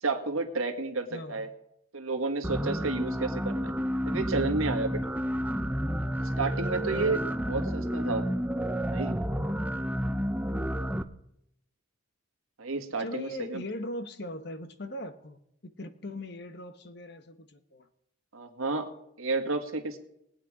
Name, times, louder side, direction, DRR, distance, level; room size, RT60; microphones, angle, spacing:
voice 1, 0.0-1.5 1.9-3.7 4.1-5.0 6.2-7.2 7.5-8.3 8.9-9.2 12.6-13.6 18.3-18.9 19.2-20.0, right 3 dB, 85° right, 1.8 m, -31 dB
voice 2, 1.1-1.5 6.9-7.3 13.0-17.9, left 1 dB, 50° left, 1.1 m, -40 dB
sound 1, 2.4-11.0, equal, 5° right, 0.5 m, -30 dB
21.0 x 8.9 x 4.9 m
head